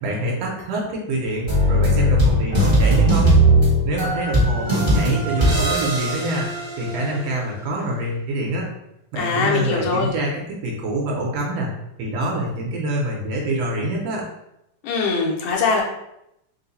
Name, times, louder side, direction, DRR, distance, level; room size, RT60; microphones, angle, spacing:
voice 1, 0.0-3.4 3.8-6.5 6.8-8.7 9.1-11.7 12.0-14.2, right 1 dB, 70° right, -2 dB, 1.8 m, -25 dB
sound 1, 1.5-7.3, right 1 dB, 25° right, 0.6 m, -18 dB
voice 2, 9.2-10.1 14.8-15.8, left 4 dB, 75° left, -1 dB, 2.0 m, -21 dB
4.7 x 2.2 x 3.9 m, 0.83 s
omnidirectional pair, 3.3 m